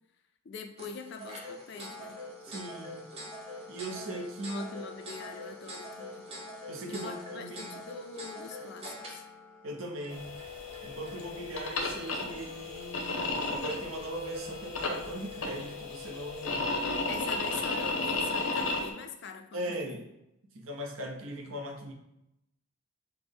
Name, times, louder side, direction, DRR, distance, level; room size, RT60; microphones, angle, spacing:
voice 1, 0.4-2.2 4.5-6.3 6.9-9.2 17.1-19.7, left 5 dB, 55° left, 6 dB, 0.4 m, -43 dB
sound 1, 0.8-15.6, left 1 dB, 25° right, 0.7 m, -46 dB
voice 2, 2.5-3.0 3.7-4.7 6.7-7.8 9.6-10.3 10.8-16.7 19.5-20.0 20.5-21.9, right 1 dB, 75° right, 3 dB, 0.7 m, -39 dB
sound 2, 10.1-18.9, left 3 dB, 85° left, 0.7 m, -34 dB
5.9 x 2.1 x 3.3 m, 0.85 s
head